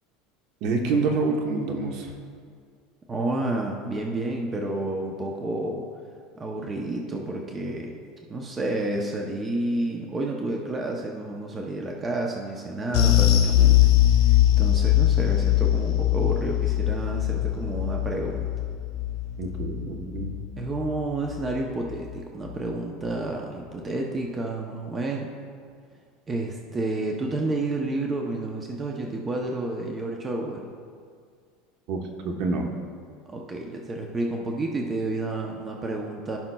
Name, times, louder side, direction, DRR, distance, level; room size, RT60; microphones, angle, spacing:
voice 1, 0.6-2.1 19.4-20.3 31.9-32.0 32.2-32.7, right 3 dB, 50° right, 3 dB, 1.0 m, -27 dB
voice 2, 3.1-5.8 6.3-7.9 8.3-13.9 14.3-18.5 20.6-25.3 26.3-30.7 33.3-36.4, right 2 dB, 15° right, 0 dB, 0.6 m, -30 dB
sound 1, 12.9-21.6 21.9-22.1 22.5-22.6, left 12 dB, 70° left, 1.9 m, -22 dB
15.0 x 5.7 x 2.2 m, 2.1 s
supercardioid pair, 160°, 0 cm